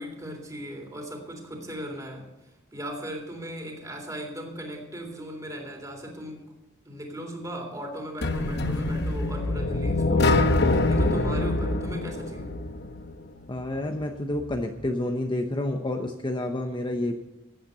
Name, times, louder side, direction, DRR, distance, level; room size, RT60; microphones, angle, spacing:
voice 1, 0.0-2.3 2.7-6.4 6.8-12.5, equal, 20° right, 2 dB, 3.3 m, -37 dB
sound 1, 8.2-13.1, left 2 dB, 60° left, 1.0 m, -24 dB
voice 2, 13.5-17.1, left 1 dB, 25° left, 4 dB, 0.9 m, -29 dB
14.5 x 9.2 x 6.8 m, 0.95 s
head